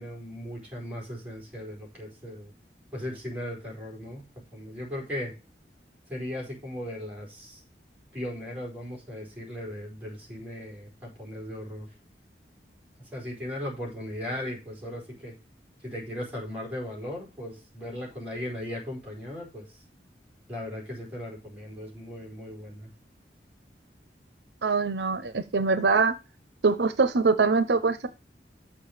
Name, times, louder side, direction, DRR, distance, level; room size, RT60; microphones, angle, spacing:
voice 1, 0.0-2.5 2.9-4.3 4.5-5.3 6.1-7.6 8.1-11.9 13.0-15.3 15.8-19.8 20.5-22.9, left 1 dB, 10° right, -2 dB, 4.3 m, -37 dB
voice 2, 24.6-26.1 26.6-28.1, right 4 dB, 80° right, 12 dB, 0.7 m, -23 dB
6.9 x 5.3 x 6.5 m, 0.30 s
head